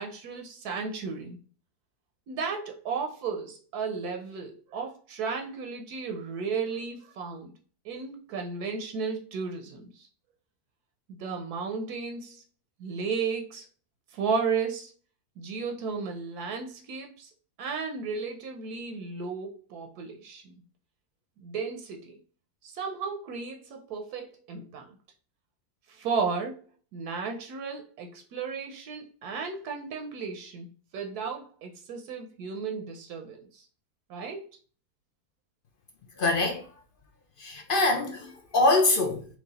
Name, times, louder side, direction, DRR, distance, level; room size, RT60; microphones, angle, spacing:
voice 1, 0.0-1.4 2.3-7.5 7.8-10.1 11.1-12.4 12.8-13.7 14.1-14.9 15.4-17.3 17.6-20.6 21.4-22.2 22.6-25.0 25.9-26.6 26.9-33.7 34.1-34.4, right 5 dB, 80° right, 1.2 m, -34 dB
voice 2, 36.2-36.7 37.4-39.3, left 2 dB, 60° left, 0.5 m, -24 dB
4.6 x 2.4 x 4.0 m
omnidirectional pair, 1.6 m